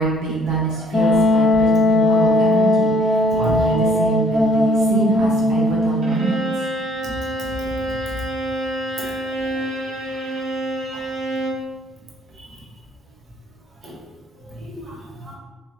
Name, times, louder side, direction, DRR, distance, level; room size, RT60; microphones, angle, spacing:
voice 1, 0.0-6.4, right 3 dB, 85° right, -6 dB, 1.0 m, -25 dB
Wind instrument woodwind instrument, 0.9-6.5, left 1 dB, 30° left, 0.4 m, -18 dB
Bowed string instrument, 6.0-11.7, right 1 dB, 65° right, 1.2 m, -27 dB
voice 2, 9.0-9.7 12.4-12.5 13.8-14.0 14.6-14.9 15.2-15.3, right 1 dB, 45° right, -4 dB, 1.1 m, -37 dB
3.1 x 3.1 x 4.2 m, 1.3 s
cardioid pair, 90°, 0 cm